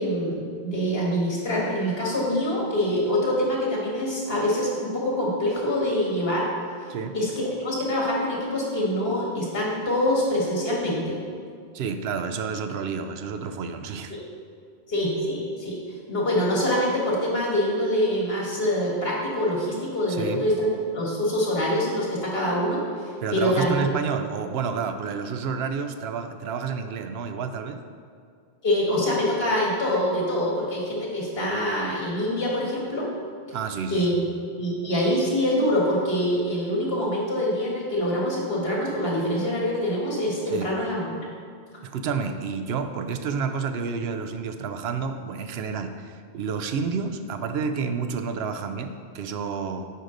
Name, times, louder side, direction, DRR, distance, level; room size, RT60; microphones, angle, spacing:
voice 1, 0.0-6.5 7.1-11.2 14.1-14.2 14.9-15.8 16.1-23.8 28.6-33.1 33.9-41.1, equal, 65° left, -3 dB, 1.8 m, -25 dB
voice 2, 11.7-14.2 20.1-20.4 23.2-27.8 33.5-34.1 40.5-40.7 41.8-49.9, right 5 dB, 80° right, 8 dB, 0.8 m, -30 dB
10.0 x 4.8 x 3.8 m, 2.2 s
omnidirectional pair, 1.1 m